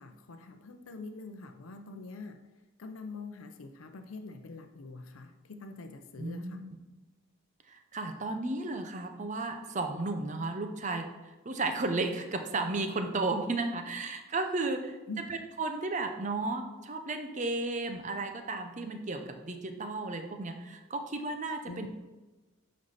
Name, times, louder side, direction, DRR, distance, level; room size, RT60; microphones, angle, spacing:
voice 1, 0.0-2.4 2.8-6.6 15.1-15.2 21.7-21.9, left 3 dB, 80° left, 6 dB, 0.6 m, -44 dB
voice 2, 6.2-6.8 7.7-15.0 15.3-21.9, right 3 dB, 35° right, 6 dB, 0.7 m, -34 dB
8.3 x 5.4 x 4.0 m, 1.1 s
head